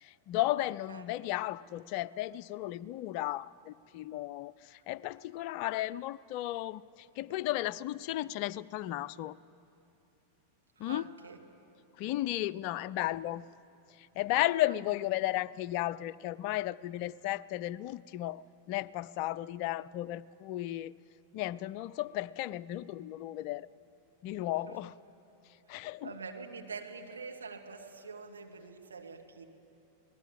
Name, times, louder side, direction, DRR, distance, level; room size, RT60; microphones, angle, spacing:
voice 1, 0.0-9.4 10.8-11.1 12.0-13.5 14.0-20.9 21.3-23.7 24.2-24.9 25.7-26.1, left 15 dB, 45° left, 0.5 m, -34 dB
voice 2, 0.5-1.3 10.8-11.4 14.6-15.0 24.7-24.9 26.0-29.4, right 4 dB, 75° right, 2.3 m, -46 dB
26.5 x 19.5 x 8.0 m
figure-of-eight pair, 90°, 0 cm